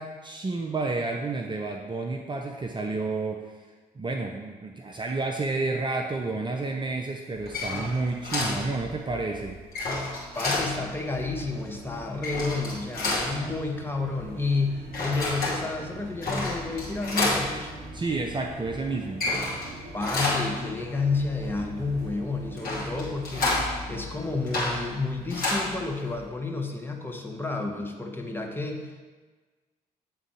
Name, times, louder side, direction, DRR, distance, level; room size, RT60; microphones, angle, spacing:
voice 1, 0.0-3.6 4.0-9.6 17.9-19.2, right 3 dB, 20° right, 2 dB, 0.6 m, -30 dB
sound 1, 7.3-26.3, left 2 dB, 45° left, 2.1 m, -31 dB
voice 2, 10.3-17.7 19.9-23.6 23.9-29.0, left 3 dB, 10° left, 2 dB, 1.0 m, -30 dB
sound 2, 11.0-24.7, right 2 dB, 55° right, 1.2 m, -44 dB
8.2 x 3.7 x 4.8 m, 1.4 s
figure-of-eight pair, 45°, 21 cm